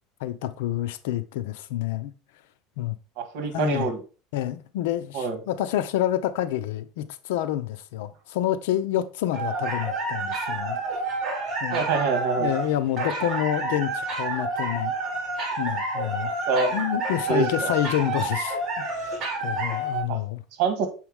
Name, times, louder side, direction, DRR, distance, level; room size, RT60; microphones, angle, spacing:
voice 1, 0.2-2.1 2.8-3.0 3.5-3.9 4.3-10.8 11.6-11.8 12.4-14.9 15.6-16.3 16.7-20.4, left 12 dB, 85° left, 0.6 m, -28 dB
voice 2, 3.2-4.0 5.1-5.4 11.7-12.5 16.5-16.8 17.1-17.7 20.1-20.2 20.6-20.9, right 5 dB, 60° right, 1.9 m, -25 dB
sound 1, 9.3-20.0, right 2 dB, 30° right, 2.1 m, -29 dB
7.2 x 4.7 x 3.6 m
cardioid pair, 155°, 0 cm